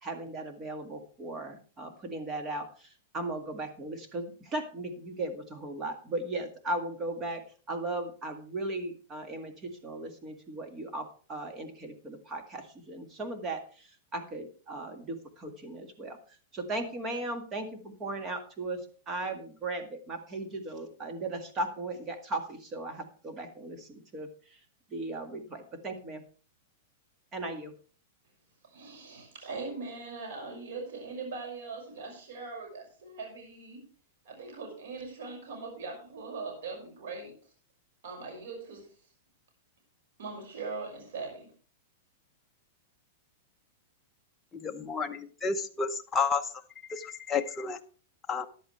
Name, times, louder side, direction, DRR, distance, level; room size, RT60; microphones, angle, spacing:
voice 1, 0.0-18.8 19.1-24.6 24.9-26.2 27.3-27.7, right 2 dB, 20° right, 5 dB, 1.9 m, -37 dB
voice 2, 28.6-33.8 34.2-37.3 38.0-38.9 40.2-41.5, right 4 dB, 75° right, 2 dB, 5.8 m, -41 dB
voice 3, 44.5-46.5 46.9-47.8 48.3-48.5, left 5 dB, 15° left, 3 dB, 0.8 m, -31 dB
14.5 x 10.5 x 3.3 m, 0.39 s
supercardioid pair, 155°, 0 cm